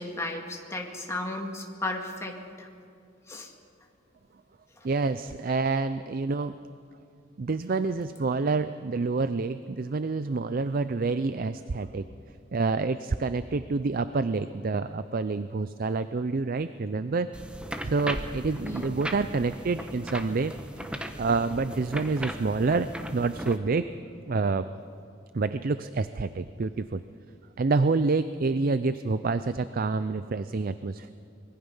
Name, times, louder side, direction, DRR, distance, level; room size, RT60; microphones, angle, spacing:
voice 1, 0.0-2.7 3.3-3.5 18.6-18.9, left 2 dB, 15° left, 1 dB, 2.1 m, -34 dB
voice 2, 4.8-6.5 7.4-12.0 12.5-17.3 17.8-20.5 21.2-23.8 24.3-24.7 25.3-27.0 27.6-31.1, right 3 dB, 45° right, 12 dB, 0.5 m, -27 dB
sound 1, 17.3-23.6, right 1 dB, 5° right, 1.1 m, -37 dB
24.5 x 21.5 x 5.6 m, 2.4 s
head